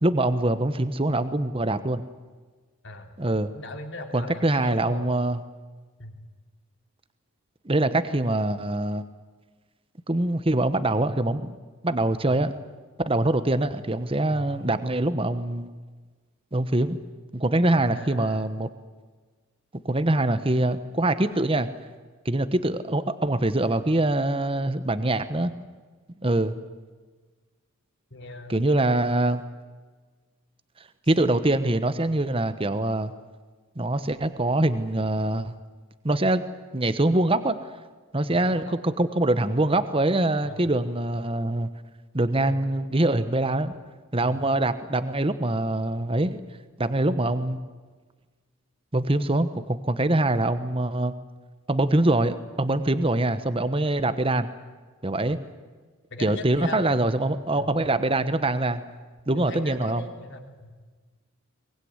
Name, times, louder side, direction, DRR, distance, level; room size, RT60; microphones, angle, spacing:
voice 1, 0.0-2.0 3.2-3.5 4.1-5.4 7.6-9.0 10.1-11.5 11.8-12.5 13.1-15.7 16.5-17.0 17.3-18.7 19.8-21.7 22.2-25.5 26.2-26.5 28.5-29.4 31.1-33.1 33.8-35.5 36.0-36.4 36.7-37.6 38.1-41.7 42.1-43.7 44.1-46.4 46.8-47.6 48.9-51.1 51.7-54.5 55.0-55.4 56.2-58.8 59.3-60.0, right 2 dB, 25° right, 11 dB, 1.1 m, -24 dB
voice 2, 3.5-5.1 6.0-6.2 12.0-12.4 14.3-14.4 17.7-18.5 28.1-28.6 38.3-38.8 40.4-40.8 42.4-42.6 44.3-44.4 56.1-56.9 57.6-57.7 59.3-60.7, left 2 dB, 55° left, 4 dB, 3.2 m, -39 dB
23.0 x 20.0 x 9.7 m, 1.4 s
head